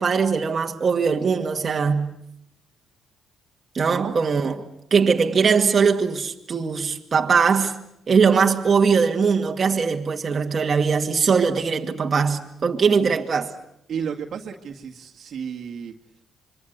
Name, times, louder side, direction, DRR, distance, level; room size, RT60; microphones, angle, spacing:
voice 1, 0.0-2.1 3.7-4.6 4.9-7.8 8.1-13.5, right 5 dB, 40° right, 2.1 m, -20 dB
voice 2, 3.8-4.2 13.9-15.9, right 7 dB, 60° right, 2.1 m, -32 dB
26.0 x 23.5 x 8.2 m
cardioid pair, 90°, 0 cm